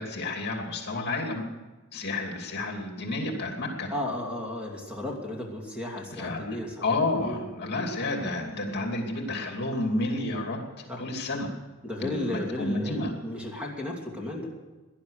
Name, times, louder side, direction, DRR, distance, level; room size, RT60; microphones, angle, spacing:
voice 1, 0.0-1.4 1.9-3.9 6.1-11.5 12.0-13.1, left 2 dB, 50° left, 2 dB, 2.7 m, -31 dB
voice 2, 3.9-6.7 7.2-7.4 10.9-11.0 11.8-14.5, left 1 dB, 5° right, -1 dB, 2.8 m, -34 dB
17.5 x 11.5 x 6.6 m, 1.2 s
head